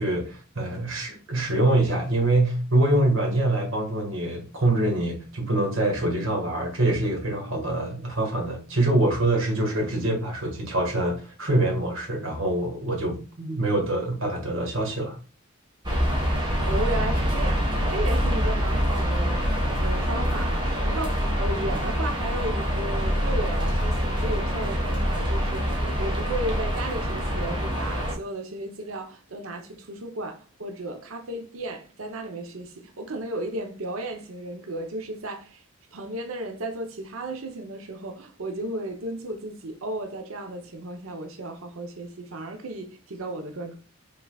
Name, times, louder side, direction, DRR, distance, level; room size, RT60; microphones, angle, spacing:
voice 1, 0.0-15.2, right 1 dB, 70° right, 1.7 m, -25 dB
sound 1, 15.8-28.1, equal, 20° right, 1.4 m, -25 dB
voice 2, 16.3-19.5 19.8-35.6 35.9-43.8, right 1 dB, 85° right, 0.8 m, -34 dB
5.4 x 3.9 x 2.3 m
head